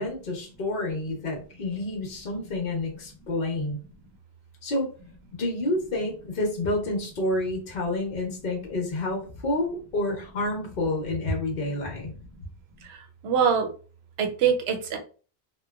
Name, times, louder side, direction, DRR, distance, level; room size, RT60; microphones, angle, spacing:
voice 1, 0.0-3.8 4.6-4.9 5.4-12.1, left 2 dB, 60° left, 0 dB, 0.9 m, -29 dB
voice 2, 13.2-13.7 14.2-15.0, right 7 dB, 80° right, 4 dB, 0.9 m, -23 dB
2.9 x 2.2 x 2.3 m, 0.37 s
omnidirectional pair, 1.1 m